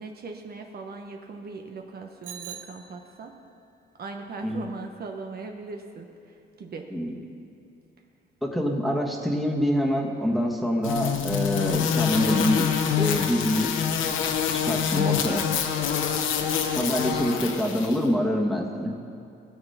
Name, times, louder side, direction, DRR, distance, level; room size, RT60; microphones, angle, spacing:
voice 1, 0.0-3.4 4.0-6.9 16.4-17.5, right 4 dB, 50° right, 3 dB, 1.1 m, -40 dB
Bicycle bell, 2.2-3.5, right 8 dB, 80° right, 0.9 m, -43 dB
voice 2, 8.4-12.7 13.0-13.7 14.5-15.5 16.7-18.9, equal, ahead, 0 dB, 1.7 m, -25 dB
sound 1, 10.8-18.0, left 8 dB, 80° left, 1.0 m, -26 dB
17.5 x 7.2 x 5.8 m, 2.7 s
cardioid pair, 90°, 20 cm